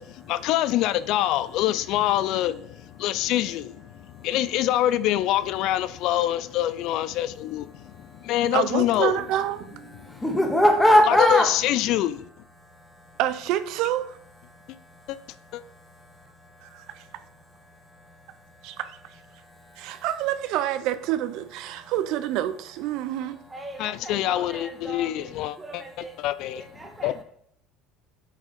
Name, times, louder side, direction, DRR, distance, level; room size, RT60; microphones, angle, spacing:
voice 1, 0.0-3.9 4.2-9.2 10.0-10.2 11.1-12.3 15.1-15.2 15.5-15.6 23.8-25.8 26.2-26.6 27.0-27.2, left 13 dB, 60° left, 0.3 m, -25 dB
voice 2, 2.7-4.4 5.9-6.1 6.9-8.6 9.9-11.6 12.5-13.2 14.5-16.2 17.2-18.8 19.3-20.1 21.6-21.9 22.9-23.5 26.2-27.0, left 1 dB, 5° left, 1.5 m, -27 dB
voice 3, 8.5-10.1 13.2-14.2 18.6-19.2 19.8-23.4, right 12 dB, 65° right, 0.5 m, -28 dB
voice 4, 23.5-26.2 26.5-27.2, right 1 dB, 15° right, 1.8 m, -41 dB
8.2 x 3.7 x 5.1 m
cardioid pair, 130°, 0 cm